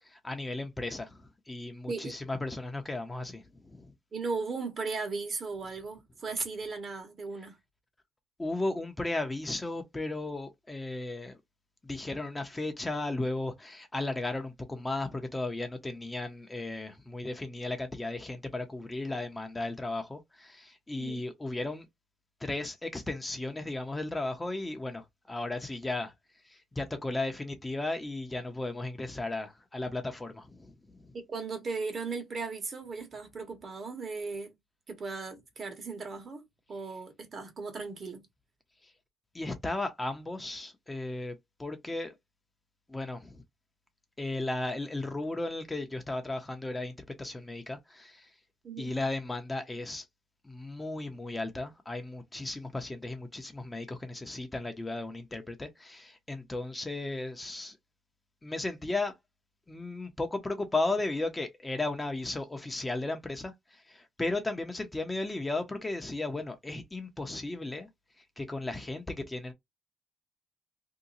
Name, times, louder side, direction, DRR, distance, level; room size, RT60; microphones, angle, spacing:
voice 1, 0.0-3.9 8.4-11.4 11.8-21.9 22.4-26.1 26.4-31.1 38.8-38.9 39.3-42.2 42.9-43.4 44.2-48.3 48.8-50.1 50.4-57.8 58.4-59.1 59.7-67.9 68.2-69.5, left 2 dB, 15° left, 0.9 m, -35 dB
voice 2, 4.1-7.6 21.0-21.2 31.1-34.6 34.9-36.4 36.7-38.3 48.6-48.9, right 4 dB, 45° right, 1.3 m, -37 dB
2.9 x 2.3 x 3.9 m
cardioid pair, 90°, 0 cm